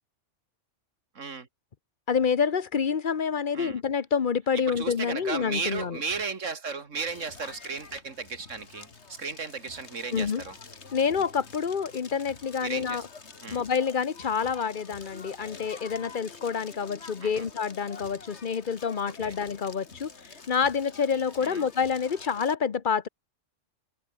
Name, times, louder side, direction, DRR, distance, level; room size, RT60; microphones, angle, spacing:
voice 1, 1.2-1.5 3.5-3.8 4.5-10.6 12.6-13.0 13.4-13.6 17.2-17.5 19.2-19.4 21.4-21.6, right 5 dB, 85° right, 2.4 m, -35 dB
voice 2, 2.1-6.0 10.1-10.4 10.9-13.0 13.5-20.1 20.5-23.1, left 6 dB, 45° left, 1.0 m, -27 dB
Crackle, 7.1-22.5, left 4 dB, 60° left, 2.4 m, -47 dB
omnidirectional pair, 1.3 m